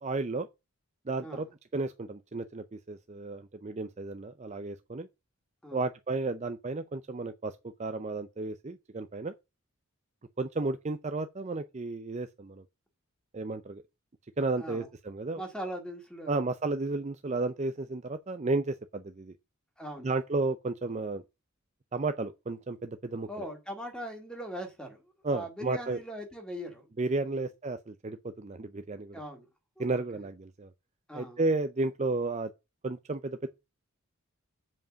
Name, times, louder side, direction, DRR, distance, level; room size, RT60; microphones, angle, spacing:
voice 1, 0.0-0.5 1.1-1.5 1.7-5.1 5.7-9.3 10.4-12.6 13.3-13.8 14.4-15.4 16.3-19.3 20.0-21.2 21.9-23.5 25.2-26.0 27.0-29.2 29.8-30.7 31.1-32.5 32.8-33.5, right 3 dB, 30° right, 0.5 m, -33 dB
voice 2, 14.6-14.9 15.4-16.4 19.8-20.1 23.3-26.9 27.3-27.5 29.1-29.5 29.8-30.3 31.1-31.4, equal, 5° left, 2.0 m, -41 dB
7.4 x 5.2 x 6.3 m
head